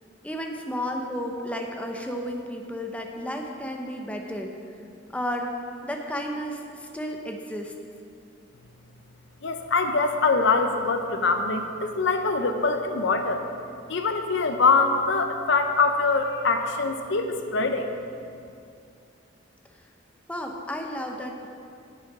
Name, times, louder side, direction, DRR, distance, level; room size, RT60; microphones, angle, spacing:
voice 1, 0.2-4.5 5.1-5.5 5.8-7.7 20.3-21.5, equal, 5° left, 2 dB, 0.8 m, -32 dB
voice 2, 9.4-13.4 13.9-17.9, left 4 dB, 70° left, 6 dB, 0.7 m, -23 dB
9.8 x 9.0 x 4.8 m, 2.5 s
head